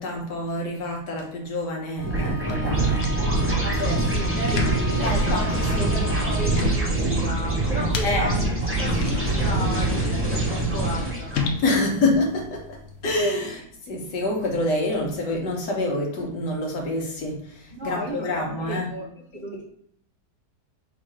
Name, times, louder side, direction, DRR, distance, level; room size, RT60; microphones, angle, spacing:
voice 1, 0.0-3.1 5.0-5.4 5.7-5.9 8.0-8.3 11.6-12.6 13.0-18.9, left 2 dB, 80° left, 0 dB, 1.7 m, -26 dB
sound 1, 2.0-13.2, left 3 dB, 65° left, 0.8 m, -35 dB
Bowed string instrument, 2.0-6.8, left 2 dB, 45° left, 1.2 m, -36 dB
sound 2, 2.0-11.5, right 2 dB, 10° right, 1.1 m, -24 dB
voice 2, 3.6-5.5 5.9-8.5 8.8-11.4 17.7-19.1 19.3-19.6, right 1 dB, 45° right, -5 dB, 0.6 m, -34 dB
3.5 x 2.9 x 4.6 m, 0.68 s
omnidirectional pair, 1.8 m